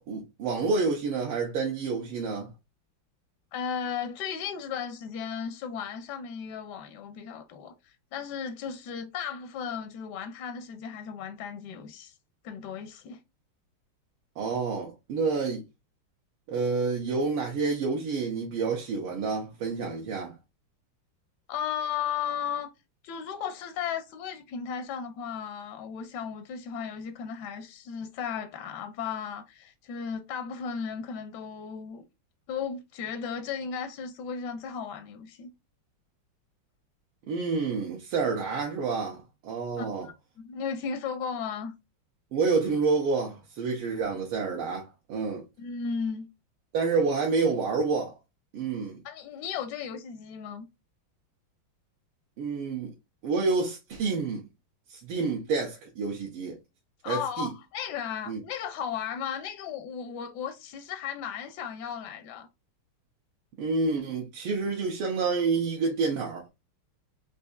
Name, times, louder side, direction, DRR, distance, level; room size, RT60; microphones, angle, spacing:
voice 1, 0.1-2.5 14.4-15.6 16.5-20.4 37.3-40.1 42.3-45.4 46.7-48.2 48.5-49.0 52.4-52.9 53.2-54.4 54.9-56.6 57.1-57.5 58.3-58.4 63.6-66.5, right 4 dB, 85° right, 1.8 m, -28 dB
voice 2, 3.5-12.2 12.4-13.2 21.5-22.7 23.0-32.0 32.5-35.5 39.8-41.7 45.6-46.3 49.0-50.6 57.0-62.5, left 7 dB, 70° left, 1.0 m, -35 dB
4.5 x 2.6 x 2.2 m
omnidirectional pair, 2.3 m